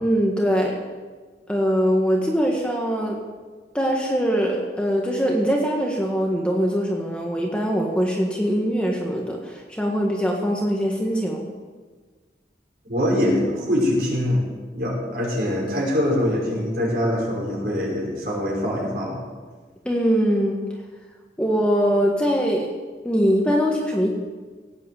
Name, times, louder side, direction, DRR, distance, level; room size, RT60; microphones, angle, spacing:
voice 1, 0.0-0.8 1.5-3.2 3.7-11.4 19.8-20.6 21.4-22.7 23.0-24.1, equal, 5° left, -1 dB, 1.6 m, -22 dB
voice 2, 12.9-14.4 14.7-19.2, left 1 dB, 55° right, -3 dB, 5.8 m, -23 dB
17.5 x 9.1 x 7.9 m, 1.4 s
head